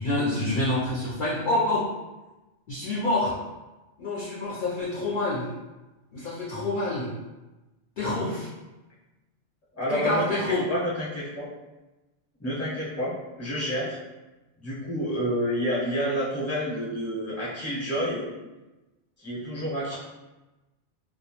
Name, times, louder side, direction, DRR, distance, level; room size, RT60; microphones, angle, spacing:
voice 1, 0.0-2.0 2.7-3.5 4.0-5.5 6.1-7.1 8.0-8.5 9.9-10.7, left 2 dB, 55° left, -7 dB, 0.6 m, -27 dB
voice 2, 9.7-10.4 10.7-11.5 12.4-14.0 14.6-18.3 19.2-19.9, equal, 15° left, -8 dB, 0.7 m, -29 dB
2.2 x 2.1 x 2.8 m, 1.1 s
omnidirectional pair, 1.1 m